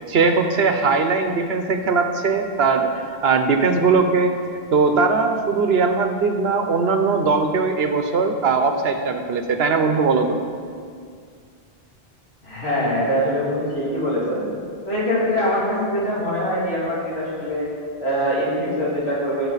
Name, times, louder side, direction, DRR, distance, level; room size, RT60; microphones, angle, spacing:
voice 1, 0.1-4.3 4.7-10.4, right 4 dB, 80° right, 6 dB, 1.1 m, -20 dB
voice 2, 12.4-14.4 14.8-17.7 18.0-19.5, equal, 90° left, -8 dB, 3.1 m, -23 dB
18.0 x 6.5 x 4.0 m, 2.2 s
omnidirectional pair, 1.0 m